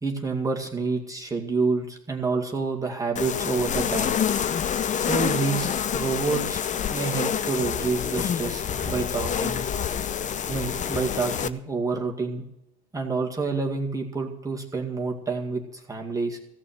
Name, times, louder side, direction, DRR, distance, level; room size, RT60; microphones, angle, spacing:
voice 1, 0.0-4.1 5.0-6.6 6.9-9.7 10.5-12.4 12.9-16.4, right 4 dB, 10° right, -1 dB, 2.1 m, -28 dB
sound 1, 3.2-11.5, left 8 dB, 20° left, 0.6 m, -27 dB
16.5 x 6.2 x 9.4 m, 0.84 s
hypercardioid pair, 85°, 34 cm